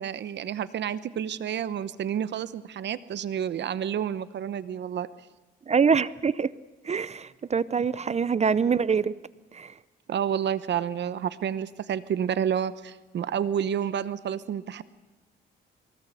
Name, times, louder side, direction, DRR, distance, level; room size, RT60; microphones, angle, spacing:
voice 1, 0.0-5.1 10.1-14.8, right 8 dB, 60° right, 15 dB, 1.0 m, -29 dB
voice 2, 5.7-6.5 6.8-9.1 9.5-9.7, right 6 dB, 35° right, 18 dB, 0.7 m, -24 dB
23.5 x 19.5 x 8.4 m, 1.2 s
cardioid pair, 90°, 20 cm